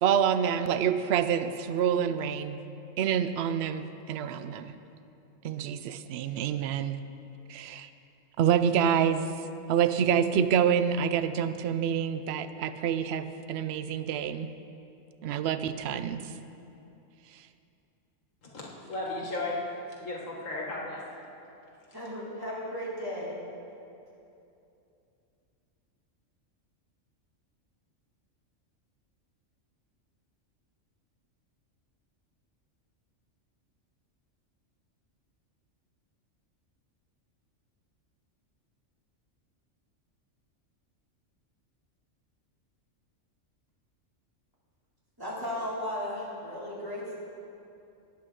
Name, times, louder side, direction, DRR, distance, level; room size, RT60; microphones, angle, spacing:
voice 1, 0.0-2.6 3.0-4.7 5.4-7.0 7.5-7.9 8.4-9.3 9.7-14.5 15.2-16.2, right 8 dB, 65° right, 11 dB, 0.7 m, -27 dB
voice 2, 18.4-19.6 20.0-21.1, left 2 dB, 80° left, -3 dB, 1.9 m, -35 dB
voice 3, 21.9-23.4 45.2-47.1, left 1 dB, 15° right, -8 dB, 3.2 m, -35 dB
19.0 x 8.6 x 3.8 m, 2.7 s
omnidirectional pair, 1.3 m